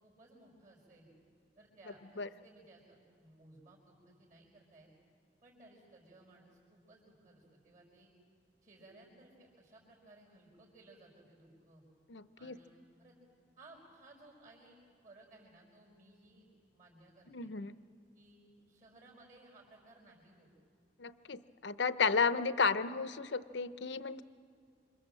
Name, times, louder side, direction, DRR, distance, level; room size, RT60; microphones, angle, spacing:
voice 1, 0.0-1.1 1.6-4.9 5.4-8.1 8.6-11.8 12.4-13.2 13.6-14.8 15.0-16.4 16.7-17.5 18.1-20.5, right 2 dB, 45° right, -4 dB, 5.6 m, -60 dB
voice 2, 12.1-12.6 17.3-17.7 21.0-24.2, left 5 dB, 70° left, 13 dB, 0.7 m, -33 dB
27.5 x 26.0 x 7.7 m, 2.3 s
head